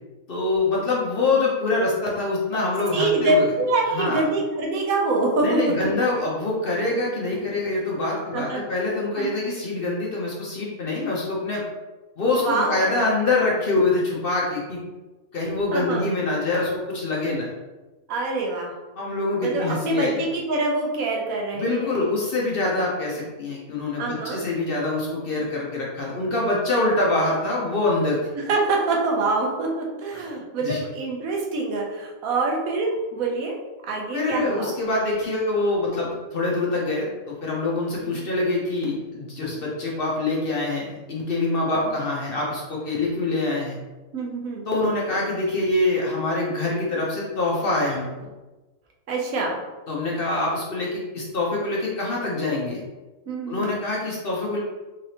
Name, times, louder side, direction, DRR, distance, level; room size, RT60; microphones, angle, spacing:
voice 1, 0.3-3.4 3.9-4.2 5.4-11.7 12.2-14.8 15.3-17.5 19.0-20.2 21.5-28.3 30.1-30.2 30.6-30.8 34.1-43.8 44.7-48.3 49.9-52.8 53.5-54.6, left 2 dB, 50° left, -3 dB, 0.8 m, -25 dB
voice 2, 2.9-5.7 8.3-8.6 9.1-9.3 12.4-12.9 15.7-16.0 18.1-18.7 19.4-22.0 24.0-24.4 28.3-33.5 33.9-34.7 38.0-38.3 44.1-44.6 49.1-49.6 53.3-53.7, right 2 dB, 80° right, 0 dB, 1.2 m, -25 dB
3.7 x 3.3 x 2.8 m, 1.1 s
omnidirectional pair, 1.5 m